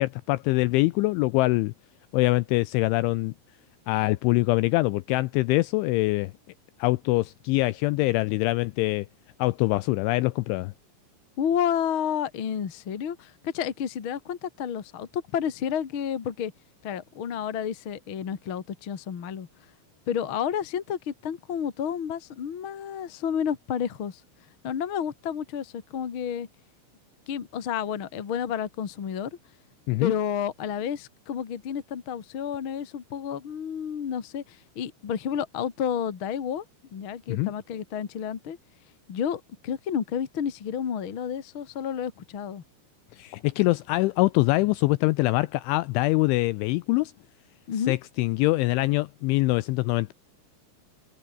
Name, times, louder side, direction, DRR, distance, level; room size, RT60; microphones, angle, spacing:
voice 1, 0.0-1.7 2.1-3.3 3.9-6.3 6.8-9.1 9.4-10.7 29.9-30.1 37.3-37.5 43.1-47.1 47.9-50.1, left 21 dB, 85° left, 2.7 m, -24 dB
voice 2, 11.4-16.5 16.8-19.5 20.1-24.2 24.6-26.5 27.3-29.3 30.0-36.6 36.9-38.6 39.1-42.6 47.7-48.0, left 8 dB, 55° left, 1.4 m, -30 dB
omnidirectional pair, 6.0 m